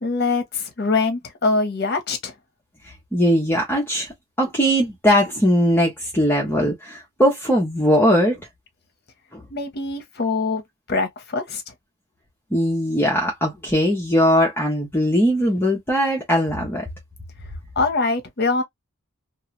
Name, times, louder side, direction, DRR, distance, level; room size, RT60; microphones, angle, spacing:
voice 1, 0.0-2.3 9.5-10.6 10.9-11.6 17.8-18.6, left 3 dB, 50° left, 0.8 m, -23 dB
voice 2, 2.8-8.4 9.3-9.4 12.5-16.9, equal, 10° left, 0.6 m, -20 dB
2.4 x 2.3 x 3.0 m
head